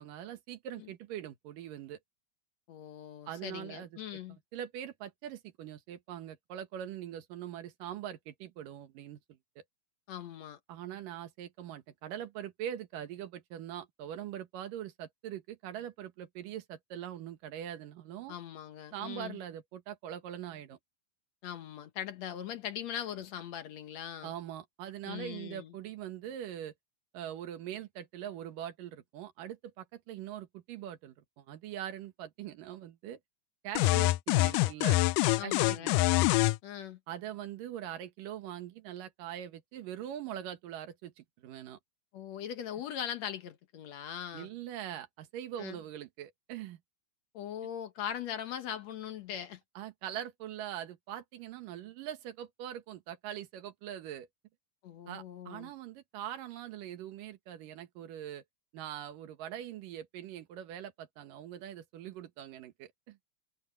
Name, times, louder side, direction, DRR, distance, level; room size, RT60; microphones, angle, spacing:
voice 1, 0.0-2.0 3.3-4.0 4.3-9.2 9.6-9.7 10.7-18.4 18.9-20.8 24.2-26.7 27.1-33.2 33.6-35.0 35.4-36.2 37.1-41.8 44.3-46.8 49.8-54.3 55.1-58.4 58.7-63.2, right 11 dB, 85° right, 3.1 m, -42 dB
voice 2, 2.7-4.4 10.1-10.6 18.3-19.4 21.4-24.3 25.1-25.7 35.4-36.0 36.6-37.0 42.1-44.5 45.6-45.8 47.3-49.6 54.8-55.7, left 9 dB, 65° left, 2.1 m, -40 dB
sound 1, 33.8-36.6, left 18 dB, 85° left, 2.1 m, -25 dB
omnidirectional pair, 3.7 m